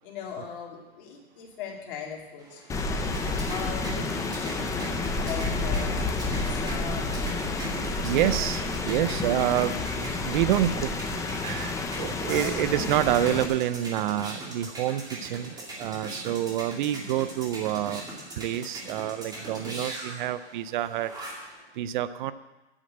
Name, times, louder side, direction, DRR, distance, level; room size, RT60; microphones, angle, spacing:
voice 1, 0.0-3.0 3.5-4.5 5.2-7.5 8.3-8.5 8.9-9.1 12.2-12.6 19.3-19.6, left 7 dB, 55° left, 0 dB, 2.7 m, -40 dB
sound 1, 2.4-21.6, right 1 dB, 10° right, 2.3 m, -40 dB
Rain, 2.7-13.5, left 3 dB, 10° left, 0.6 m, -30 dB
voice 2, 8.0-18.0 18.4-21.1 21.7-22.3, right 12 dB, 50° right, 14 dB, 0.5 m, -28 dB
8.7 x 7.7 x 7.6 m, 1.1 s
hypercardioid pair, 145°, 32 cm